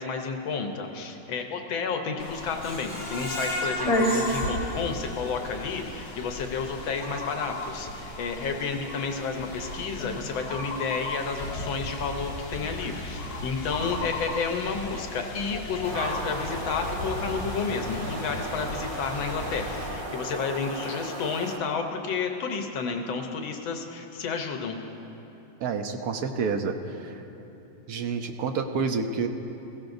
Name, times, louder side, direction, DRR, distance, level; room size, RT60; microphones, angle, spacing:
voice 1, 0.0-24.8, left 5 dB, 85° left, 4 dB, 1.7 m, -31 dB
sound 1, 2.2-19.9, left 1 dB, 50° left, 2.2 m, -34 dB
Screech, 2.6-5.6 6.0-6.1 6.5-6.6, left 1 dB, 65° left, 4.4 m, -34 dB
sound 2, 15.8-21.6, right 1 dB, 35° right, 0.9 m, -36 dB
voice 2, 25.6-27.2 27.9-29.3, right 5 dB, 60° right, 5 dB, 1.2 m, -29 dB
22.0 x 16.0 x 2.6 m, 2.9 s
omnidirectional pair, 2.1 m